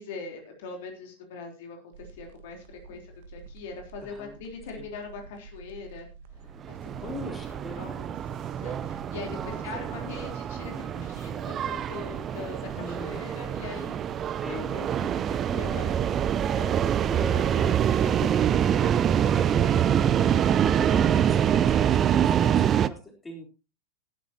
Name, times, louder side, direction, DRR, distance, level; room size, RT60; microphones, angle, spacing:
voice 1, 0.0-6.1 6.7-7.3 7.7-14.0 14.5-17.0 17.5-17.7 18.0-18.1 18.7-18.8, left 4 dB, 55° left, 3 dB, 3.6 m, -42 dB
sound 1, 1.9-15.0, right 5 dB, 55° right, 1.7 m, -50 dB
voice 2, 4.0-4.4 4.8-4.9 7.0-7.9 9.2-9.6 10.0-10.1 12.7-13.2 14.4-14.7 17.1-17.9 18.7-19.0 19.3-20.3 20.6-23.5, left 1 dB, 10° left, 3 dB, 3.8 m, -41 dB
sound 2, 6.6-22.9, right 9 dB, 25° right, 0.6 m, -25 dB
18.0 x 11.5 x 2.9 m, 0.30 s
figure-of-eight pair, 90°, 0 cm